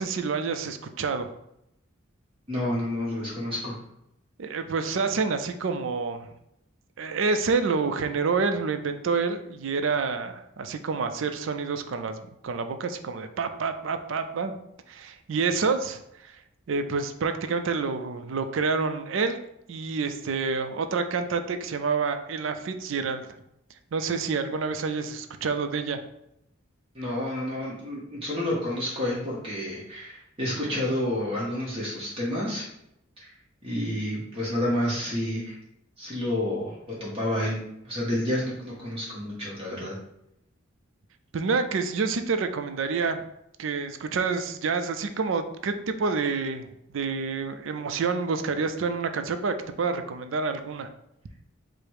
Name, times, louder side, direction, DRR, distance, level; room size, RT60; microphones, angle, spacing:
voice 1, 0.0-1.3 4.4-6.3 7.0-14.5 14.9-16.4 16.7-19.4 19.7-23.3 23.9-26.0 41.3-43.2 43.6-50.9, right 4 dB, 70° right, 8 dB, 0.4 m, -28 dB
voice 2, 2.5-3.8 26.9-32.6 33.2-33.3 33.6-35.6 36.0-37.6 37.8-40.0, left 1 dB, 25° right, -6 dB, 0.8 m, -29 dB
4.9 x 2.0 x 4.6 m, 0.81 s
head